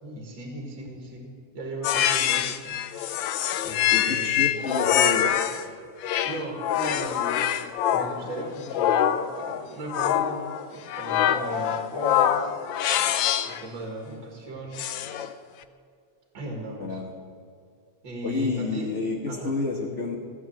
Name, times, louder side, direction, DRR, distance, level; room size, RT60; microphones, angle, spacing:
voice 1, 0.0-2.8 3.6-4.5 6.3-7.5 7.9-12.6 13.4-15.3 16.3-17.0 18.0-19.0 19.3-19.6, right 2 dB, 65° right, 1 dB, 2.8 m, -37 dB
sound 1, 1.8-5.6 6.0-13.6 14.8-15.3, left 10 dB, 75° left, 1.4 m, -25 dB
voice 2, 3.9-5.4 16.8-17.1 18.2-20.2, left 3 dB, 40° left, -2 dB, 1.6 m, -29 dB
15.5 x 8.9 x 7.6 m, 2.3 s
omnidirectional pair, 2.2 m